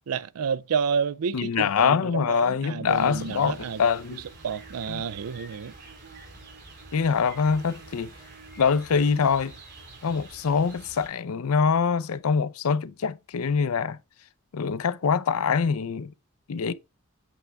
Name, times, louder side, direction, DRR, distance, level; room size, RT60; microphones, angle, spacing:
voice 1, 0.1-3.8 4.4-5.7, right 6 dB, 85° right, 0.4 m, -30 dB
voice 2, 1.3-4.2 4.9-5.0 6.9-8.1 8.6-9.5 10.0-14.0 14.5-16.1 16.5-16.7, left 6 dB, 75° left, 0.5 m, -24 dB
sound 1, 2.9-11.1, right 3 dB, 55° right, 3.2 m, -47 dB
8.3 x 3.3 x 4.5 m
head